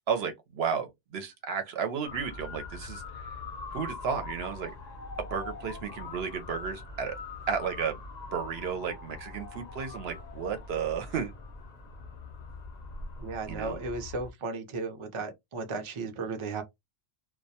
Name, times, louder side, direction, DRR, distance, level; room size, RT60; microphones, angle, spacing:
voice 1, 0.1-3.0 3.7-4.7 5.3-7.2 7.5-8.0 8.3-11.3 13.5-13.8, right 6 dB, 70° right, 0.8 m, -33 dB
Motor vehicle (road) / Siren, 2.0-14.3, left 3 dB, 50° left, 0.6 m, -42 dB
voice 2, 13.2-16.6, right 3 dB, 40° right, 0.4 m, -35 dB
2.2 x 2.1 x 2.7 m
omnidirectional pair, 1.2 m